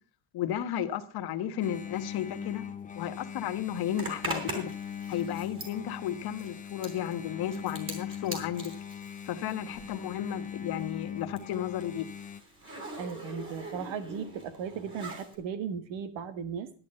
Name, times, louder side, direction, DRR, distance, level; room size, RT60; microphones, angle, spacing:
voice 1, 0.3-2.7 2.9-4.7 5.1-8.7 9.2-12.1, left 10 dB, 55° left, 1.2 m, -33 dB
Engine, 1.6-12.4, left 8 dB, 20° left, 0.5 m, -41 dB
Zipper (clothing), 3.9-10.1 10.4-15.4, right 1 dB, 25° right, 3.4 m, -42 dB
voice 2, 13.0-16.7, right 7 dB, 80° right, 1.6 m, -36 dB
11.5 x 10.5 x 5.4 m
cardioid pair, 165°, 44 cm